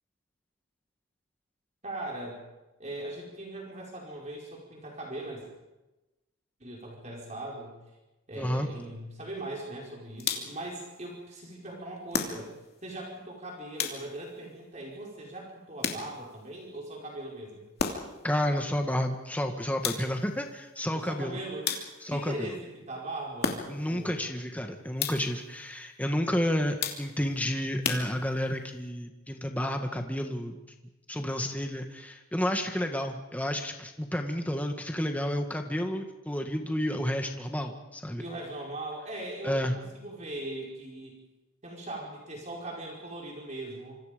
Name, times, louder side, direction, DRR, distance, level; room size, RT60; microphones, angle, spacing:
voice 1, 1.8-2.4 2.8-5.5 6.6-7.7 8.3-12.5 12.8-17.7 20.9-21.7 22.1-24.3 38.2-41.2 41.6-44.0, right 1 dB, 35° right, -2 dB, 4.8 m, -40 dB
voice 2, 8.4-8.7 18.2-21.4 22.0-22.5 23.7-30.6 31.1-38.2 39.4-39.8, equal, 5° left, 4 dB, 1.7 m, -31 dB
sound 1, 10.2-10.7 12.1-12.8 13.8-14.4 15.8-16.4 17.8-18.3 19.8-20.4 21.6-22.2 23.4-24.0 25.0-25.5 26.8-27.3 27.8-28.6, left 5 dB, 50° left, 2.8 m, -34 dB
26.5 x 26.0 x 5.2 m, 1.0 s
head